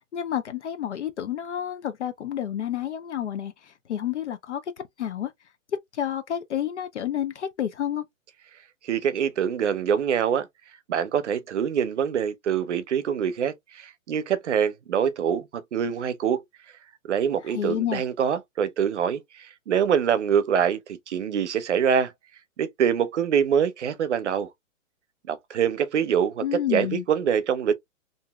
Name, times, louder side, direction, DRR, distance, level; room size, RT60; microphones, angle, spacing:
voice 1, 0.1-4.6 5.0-5.3 5.9-8.0 17.5-18.0 26.4-27.0, left 10 dB, 60° left, 0.6 m, -29 dB
voice 2, 8.8-10.5 10.9-16.4 17.1-22.1 22.6-24.5 25.3-27.7, right 8 dB, 60° right, 0.7 m, -25 dB
2.9 x 2.7 x 2.3 m
hypercardioid pair, 175°, 40 cm